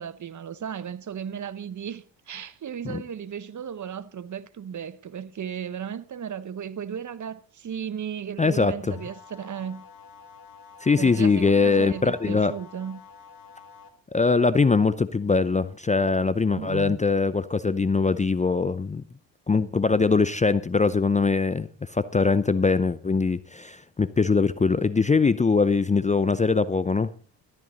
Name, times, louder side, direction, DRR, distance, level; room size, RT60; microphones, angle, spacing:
voice 1, 0.0-9.8 10.9-13.0 16.6-17.0, right 8 dB, 40° right, 1.0 m, -35 dB
voice 2, 8.4-8.9 10.8-12.5 14.1-19.0 19.5-27.1, left 4 dB, 15° left, 0.6 m, -22 dB
sound 1, 8.9-13.9, left 6 dB, 90° left, 2.0 m, -49 dB
13.5 x 12.5 x 4.0 m
supercardioid pair, 60°, 45 cm